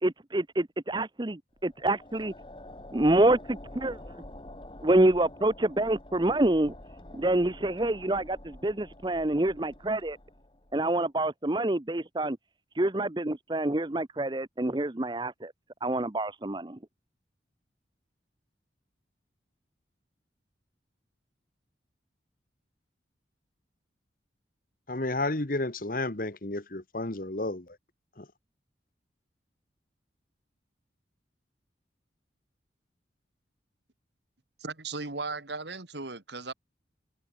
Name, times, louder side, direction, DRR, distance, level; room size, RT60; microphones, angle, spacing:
voice 1, 0.0-2.3 2.9-4.0 4.8-6.7 7.1-10.2 10.7-12.4 12.7-15.5 15.8-16.8, right 1 dB, 25° right, 0.8 m, -27 dB
sound 1, 1.5-10.9, left 1 dB, 25° left, 1.7 m, -48 dB
voice 2, 24.9-27.8 28.2-28.3, left 2 dB, 50° left, 1.5 m, -32 dB
voice 3, 34.6-36.5, right 3 dB, 70° right, 2.3 m, -36 dB
head